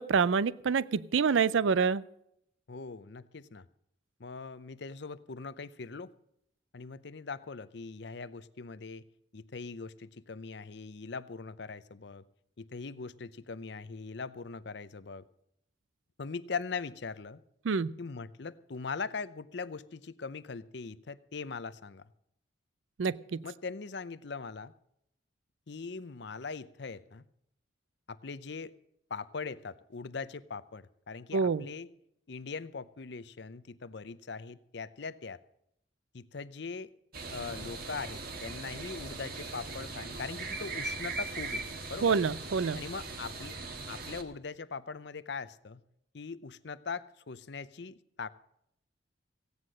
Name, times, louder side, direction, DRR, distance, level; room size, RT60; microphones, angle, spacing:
voice 1, 0.0-2.0 17.6-17.9 23.0-23.4 31.3-31.6 42.0-42.8, right 5 dB, 80° right, 20 dB, 0.4 m, -27 dB
voice 2, 2.7-3.7 4.2-6.1 6.7-9.1 9.3-12.2 12.6-15.2 16.2-17.4 18.0-22.0 23.4-24.7 25.7-27.2 28.1-28.7 29.1-31.9 32.3-35.4 36.1-36.9 37.3-41.6 41.9-42.2 42.8-43.6 43.9-45.8 46.1-48.3, left 4 dB, 60° left, 15 dB, 0.6 m, -41 dB
sound 1, 37.1-44.2, right 3 dB, 50° right, 1.7 m, -40 dB
16.0 x 9.5 x 6.3 m, 0.75 s
head